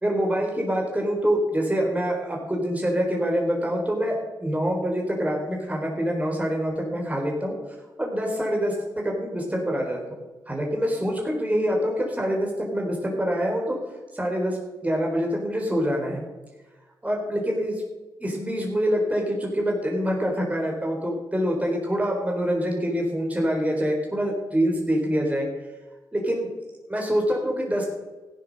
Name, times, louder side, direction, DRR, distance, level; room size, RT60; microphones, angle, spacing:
voice 1, 0.0-7.6 8.0-10.2 10.5-13.8 14.1-16.2 17.0-17.8 18.2-25.5 26.1-26.5 26.9-27.9, equal, 15° right, 0 dB, 3.8 m, -25 dB
14.0 x 10.5 x 6.4 m, 1.2 s
cardioid pair, 55°, 9 cm